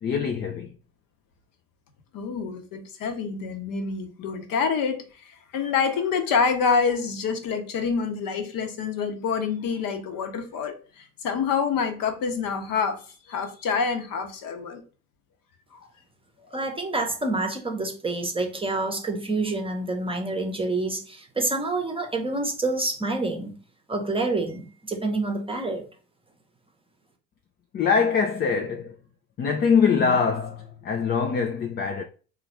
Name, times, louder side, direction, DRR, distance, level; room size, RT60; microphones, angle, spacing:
voice 1, 0.0-0.7 27.7-28.9 29.4-32.0, left 6 dB, 25° left, 0.4 m, -23 dB
voice 2, 2.1-14.8 15.7-15.9, left 5 dB, 45° left, 1.0 m, -27 dB
voice 3, 16.5-23.5 23.9-25.8, right 2 dB, 10° right, 0.9 m, -27 dB
3.9 x 2.4 x 4.4 m
hypercardioid pair, 65°, 46 cm